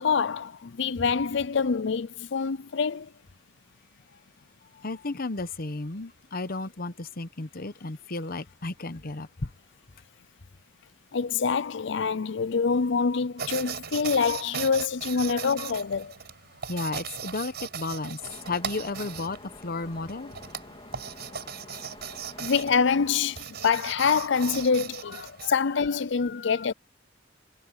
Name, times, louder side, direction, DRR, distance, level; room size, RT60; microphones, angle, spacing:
voice 1, 0.0-3.1 11.1-16.1 22.4-26.7, left 5 dB, 70° left, 0.6 m, -26 dB
voice 2, 4.8-9.3 16.7-18.2 18.5-19.4 19.6-20.3 25.4-25.5 26.4-26.5, left 3 dB, 50° left, 1.0 m, -33 dB
sound 1, 13.4-25.5, right 7 dB, 60° right, 5.9 m, -38 dB
Waves surf, 18.2-23.4, left 2 dB, 30° left, 3.6 m, -48 dB
head